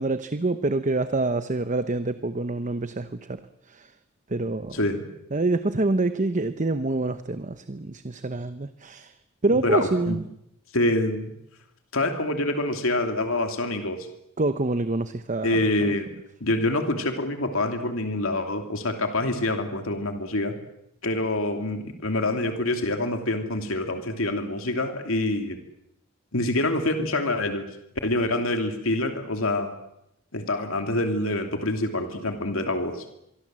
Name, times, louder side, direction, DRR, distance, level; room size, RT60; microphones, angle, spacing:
voice 1, 0.0-3.4 3.7-3.9 4.3-4.8 5.3-9.1 9.4-10.2 14.4-15.6, right 2 dB, 35° right, 11 dB, 0.9 m, -26 dB
voice 2, 4.7-5.0 9.5-10.2 10.7-11.3 11.9-14.0 15.4-16.1 16.4-20.5 21.0-25.6 26.3-27.7 28.0-29.7 30.3-33.0, left 2 dB, 80° left, 5 dB, 2.9 m, -26 dB
26.0 x 23.5 x 7.7 m, 0.82 s
head